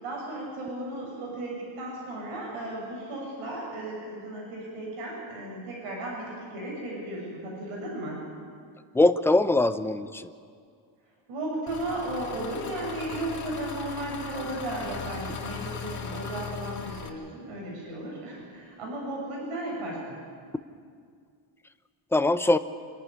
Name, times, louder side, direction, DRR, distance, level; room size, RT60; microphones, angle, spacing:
voice 1, 0.0-8.2 11.3-20.0, right 1 dB, 85° right, -2 dB, 7.2 m, -35 dB
voice 2, 8.9-10.3 22.1-22.6, left 2 dB, 5° left, 11 dB, 0.6 m, -22 dB
Engine, 11.7-17.1, left 6 dB, 35° left, 1.8 m, -38 dB
27.0 x 11.5 x 9.8 m, 2.2 s
cardioid pair, 135°, 50 cm